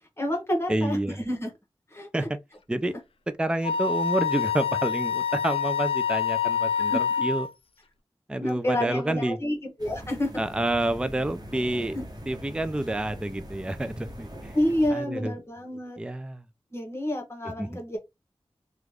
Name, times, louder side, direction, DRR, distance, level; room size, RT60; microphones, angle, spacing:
voice 1, 0.2-1.5 1.9-2.3 6.9-7.0 8.4-10.3 11.9-12.0 14.5-16.0 16.7-18.0, left 1 dB, 25° left, 1.2 m, -29 dB
voice 2, 0.7-1.2 2.1-2.3 2.7-2.9 3.4-7.5 8.3-9.4 10.4-12.0 12.3-14.5 14.9-15.3 16.0-16.4 17.6-17.8, right 1 dB, 10° right, 0.4 m, -28 dB
Wind instrument woodwind instrument, 3.6-7.5, left 7 dB, 65° left, 0.3 m, -26 dB
sound 1, 9.8-14.9, equal, 40° right, 1.0 m, -41 dB
3.1 x 2.4 x 3.4 m
wide cardioid pair, 70°, 10 cm